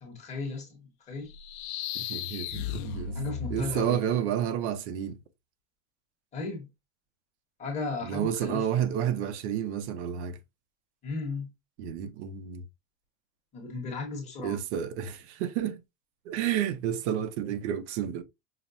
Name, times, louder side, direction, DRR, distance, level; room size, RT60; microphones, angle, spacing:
voice 1, 0.0-1.3 3.1-4.0 6.3-6.7 7.6-8.7 11.0-11.5 13.5-14.6, left 3 dB, 20° left, 1.1 m, -35 dB
sound 1, 1.3-4.1, left 8 dB, 65° left, 0.6 m, -36 dB
voice 2, 1.9-3.2 3.5-5.2 8.0-10.4 11.8-12.6 14.4-15.8 16.3-18.2, right 9 dB, 70° right, 0.7 m, -30 dB
5.8 x 2.1 x 2.5 m
cardioid pair, 180°, 35 cm